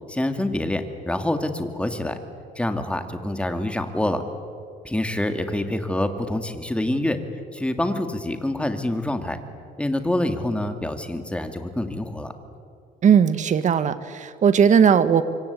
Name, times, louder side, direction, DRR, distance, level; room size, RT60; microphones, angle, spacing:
voice 1, 0.1-2.2 2.6-4.2 4.8-7.2 7.5-9.4 9.8-12.3, left 1 dB, 5° left, 7 dB, 2.4 m, -26 dB
voice 2, 13.0-15.2, right 7 dB, 45° right, 12 dB, 1.6 m, -17 dB
25.5 x 24.0 x 8.4 m, 2.3 s
cardioid pair, 110°, 17 cm